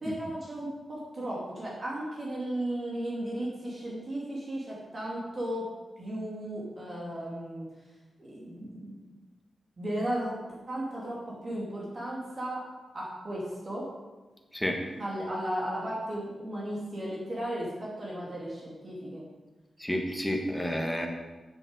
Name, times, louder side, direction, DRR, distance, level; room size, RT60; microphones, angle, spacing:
voice 1, 0.0-5.7 6.0-7.7 8.2-9.0 9.8-10.3 10.7-12.6 12.9-13.9 15.0-19.2, right 1 dB, 35° right, -5 dB, 2.6 m, -35 dB
voice 2, 19.8-21.1, equal, ahead, 1 dB, 1.4 m, -30 dB
7.3 x 7.1 x 6.6 m, 1.2 s
wide cardioid pair, 155°, 0 cm